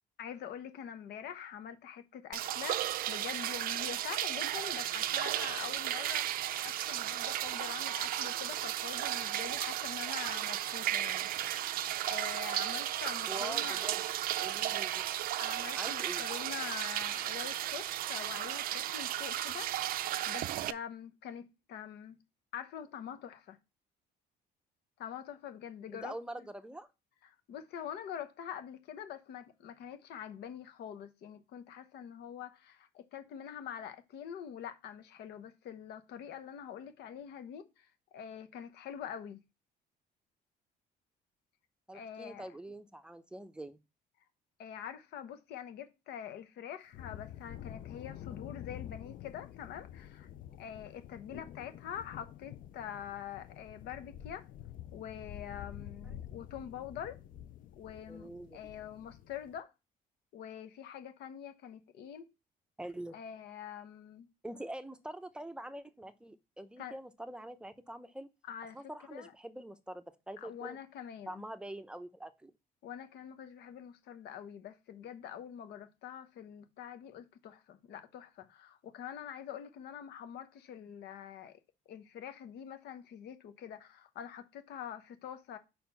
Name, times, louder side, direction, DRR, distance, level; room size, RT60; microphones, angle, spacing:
voice 1, 0.2-11.5 12.0-14.0 15.4-22.2 22.5-23.6 25.0-26.1 27.5-39.4 41.9-42.5 44.6-50.3 50.6-54.4 54.9-57.2 57.8-59.7 60.3-62.3 63.1-64.3 66.8-67.0 68.5-68.8 69.1-69.3 70.4-71.4 72.8-81.6 81.9-85.6, left 9 dB, 75° left, 0.9 m, -45 dB
sound 1, 2.3-20.7, right 13 dB, 60° right, 0.4 m, -34 dB
voice 2, 13.3-14.1 14.4-15.1 15.7-16.3 25.9-26.9 41.9-43.8 58.1-58.7 62.8-63.2 64.4-68.3 68.7-70.8 71.3-72.5, right 1 dB, 5° right, 0.6 m, -44 dB
sound 2, 46.9-59.6, left 11 dB, 55° left, 0.4 m, -48 dB
5.2 x 4.3 x 5.7 m
cardioid pair, 110°, 17 cm